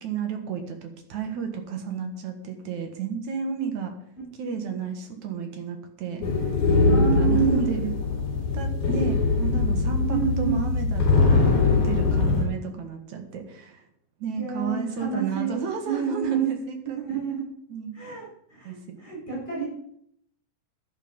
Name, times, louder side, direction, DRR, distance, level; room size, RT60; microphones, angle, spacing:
voice 1, 0.0-3.9 4.4-6.5 6.9-7.9 8.5-13.8 14.2-17.0 17.7-17.9 18.6-19.0, right 6 dB, 60° right, 5 dB, 2.6 m, -32 dB
sound 1, 6.2-12.5, left 3 dB, 55° left, 5.2 m, -22 dB
voice 2, 6.9-7.6 10.1-10.7 14.4-15.6 15.8-16.5 16.8-17.4 17.9-18.2 18.5-19.7, right 7 dB, 10° left, -7 dB, 6.8 m, -29 dB
11.5 x 11.0 x 5.3 m, 0.71 s
omnidirectional pair, 4.1 m